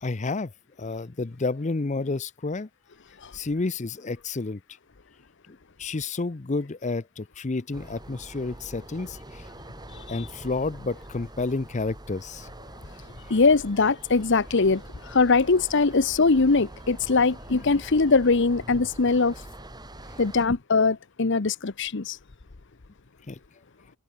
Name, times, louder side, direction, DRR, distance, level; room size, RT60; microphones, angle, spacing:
voice 1, 0.0-0.5 0.8-2.7 3.3-4.6 5.5-9.5 10.1-12.5 13.2-13.3 23.3-23.4, left 3 dB, 35° left, 0.6 m, -30 dB
sound 1, 7.7-20.5, right 1 dB, 20° right, 4.2 m, -44 dB
voice 2, 13.3-19.3 20.2-22.2, left 4 dB, 60° left, 0.9 m, -22 dB
head